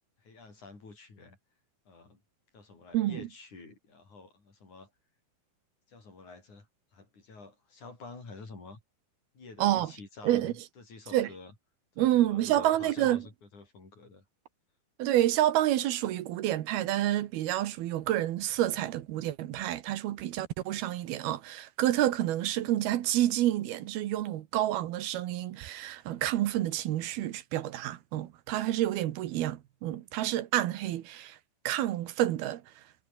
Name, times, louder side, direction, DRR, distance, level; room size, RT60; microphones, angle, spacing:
voice 1, 0.2-1.4 1.9-2.2 2.5-4.9 5.9-6.7 6.9-8.8 9.3-11.5 12.0-14.2, left 3 dB, 50° left, 8.4 m, -49 dB
voice 2, 2.9-3.3 9.6-9.9 10.2-10.5 11.1-11.3 12.0-13.2 15.0-31.4 31.6-32.6, right 13 dB, 80° right, 3.1 m, -29 dB
omnidirectional pair, 4.4 m